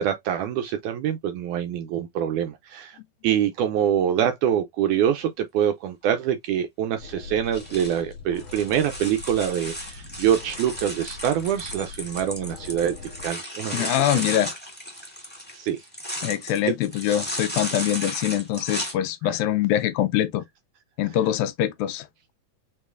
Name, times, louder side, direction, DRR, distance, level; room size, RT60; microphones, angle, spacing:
voice 1, 0.0-3.0 3.2-12.9 13.2-14.2 15.5-15.8 19.2-19.4, right 9 dB, 80° right, 1.8 m, -25 dB
sound 1, 7.0-13.3, left 5 dB, 65° left, 2.6 m, -43 dB
sound 2, 7.4-18.9, equal, 5° left, 1.3 m, -35 dB
voice 2, 13.7-14.5 16.2-20.4 21.0-22.1, left 12 dB, 85° left, 2.4 m, -24 dB
6.6 x 3.1 x 2.5 m
omnidirectional pair, 4.1 m